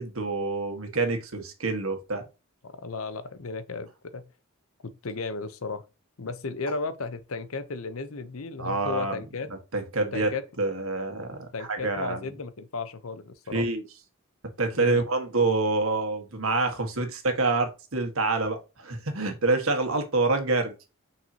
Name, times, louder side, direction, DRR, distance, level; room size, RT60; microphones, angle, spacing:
voice 1, 0.0-2.2 8.6-9.2 9.7-12.2 13.5-13.8 14.6-20.7, right 3 dB, 70° right, 1.6 m, -27 dB
voice 2, 2.7-4.3 4.8-5.8 6.2-9.5 10.1-10.4 11.5-13.6 14.8-15.0, left 4 dB, 70° left, 0.8 m, -34 dB
6.0 x 5.7 x 2.8 m
head